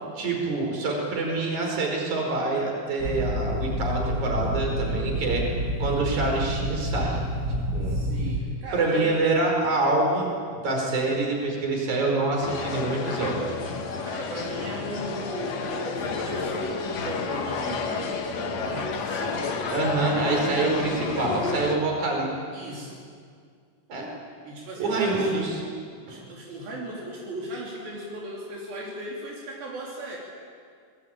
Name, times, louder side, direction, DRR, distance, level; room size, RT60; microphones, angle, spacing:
voice 1, 0.2-5.5 5.8-7.2 7.5-8.0 8.7-13.5 19.7-22.3 23.9-24.1 24.8-25.6 26.1-26.2, right 2 dB, 50° right, 1 dB, 6.1 m, -26 dB
sound 1, 3.0-8.4, equal, 30° right, 2.7 m, -28 dB
voice 2, 7.9-9.1 14.0-19.5 20.1-20.8 22.5-23.0 24.4-25.5 26.0-30.2, right 1 dB, 75° right, -3 dB, 5.1 m, -37 dB
sound 2, 12.4-21.8, left 4 dB, 50° left, 2.7 m, -30 dB
26.5 x 21.5 x 8.9 m, 2.1 s
omnidirectional pair, 4.3 m